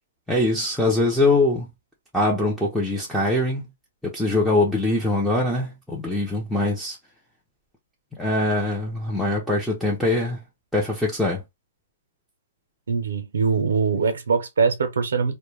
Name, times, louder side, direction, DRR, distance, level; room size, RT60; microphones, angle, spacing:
voice 1, 0.3-1.7 2.1-3.6 4.0-7.0 8.2-10.4 10.7-11.4, left 2 dB, ahead, 0.5 m, -22 dB
voice 2, 12.9-15.3, right 5 dB, 85° right, 0.6 m, -22 dB
2.1 x 2.1 x 3.1 m
hypercardioid pair, 140°, 0 cm